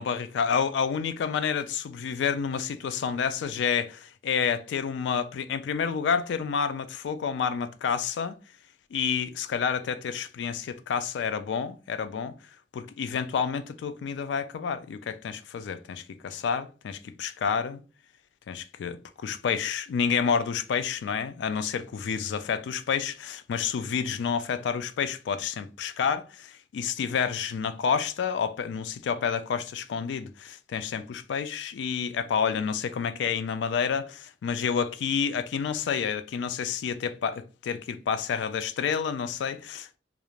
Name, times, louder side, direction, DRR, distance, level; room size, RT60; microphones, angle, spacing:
voice 1, 0.0-8.4 8.9-12.3 12.7-17.8 18.5-40.0, left 6 dB, 80° left, 0.3 m, -29 dB
2.4 x 2.1 x 3.0 m
head